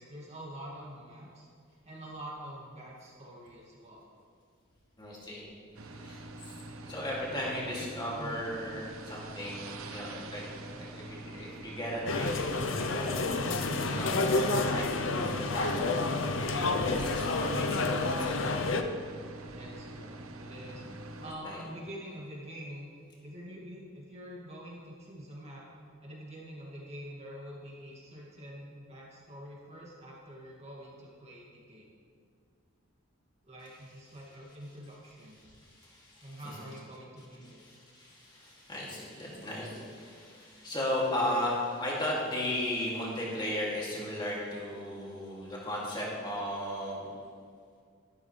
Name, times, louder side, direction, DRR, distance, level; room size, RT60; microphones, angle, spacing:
voice 1, 0.0-1.5 1.8-4.0 6.6-7.0 7.3-7.8 8.2-8.4 10.7-11.3 19.5-20.8 21.2-22.9 23.2-25.6 26.0-31.9 33.4-35.4 36.2-37.6 41.4-41.6, equal, 30° right, -4 dB, 2.3 m, -46 dB
voice 2, 5.0-5.4 5.9-6.5 6.9-10.4 10.8-17.8 18.2-18.6 20.7-20.9 21.2-21.6 35.4-36.4 37.4-47.1, left 1 dB, 20° left, -5 dB, 2.7 m, -36 dB
sound 1, 5.7-21.3, right 2 dB, 80° right, 0.9 m, -45 dB
sound 2, 12.1-18.8, left 3 dB, 60° left, 0.7 m, -29 dB
13.0 x 12.5 x 3.4 m, 2.2 s
head